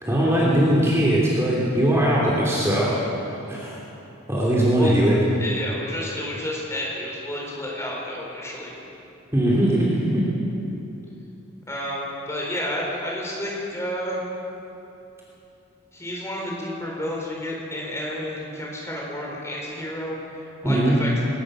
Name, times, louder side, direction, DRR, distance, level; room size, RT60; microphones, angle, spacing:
voice 1, 0.0-3.0 3.5-3.7 4.3-5.2 9.3-10.2 20.6-21.0, right 1 dB, 15° right, -6 dB, 3.1 m, -20 dB
voice 2, 5.4-8.7 11.7-14.2 15.9-21.2, left 1 dB, 15° left, -3 dB, 4.4 m, -30 dB
21.5 x 19.0 x 6.4 m, 3.0 s
head